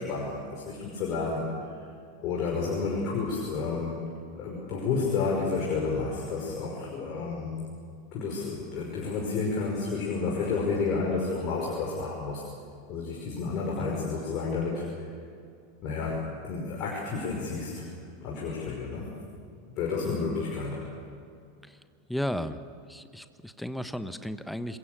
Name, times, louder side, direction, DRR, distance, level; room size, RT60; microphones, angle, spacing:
voice 1, 0.0-1.5 2.2-4.0 4.3-7.6 8.1-12.4 12.9-14.9 15.8-17.9 18.2-19.1 19.8-20.8, left 4 dB, 40° left, -2 dB, 5.7 m, -30 dB
voice 2, 20.0-20.4 22.1-22.6 22.9-24.8, equal, ahead, 11 dB, 1.2 m, -34 dB
27.5 x 23.0 x 6.9 m, 2.3 s
figure-of-eight pair, 85°, 0 cm